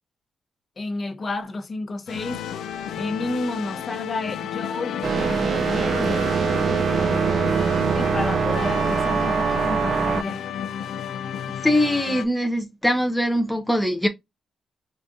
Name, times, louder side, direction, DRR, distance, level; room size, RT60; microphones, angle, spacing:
voice 1, 0.8-2.4 2.9-6.2 7.9-10.5, left 2 dB, 35° left, 0.8 m, -31 dB
sound 1, 2.1-12.2, left 9 dB, 85° left, 0.4 m, -32 dB
sound 2, 5.0-10.2, right 6 dB, 55° right, 0.3 m, -23 dB
voice 2, 11.6-14.1, left 1 dB, 5° left, 0.5 m, -22 dB
4.9 x 2.5 x 2.6 m
cardioid pair, 100°, 0 cm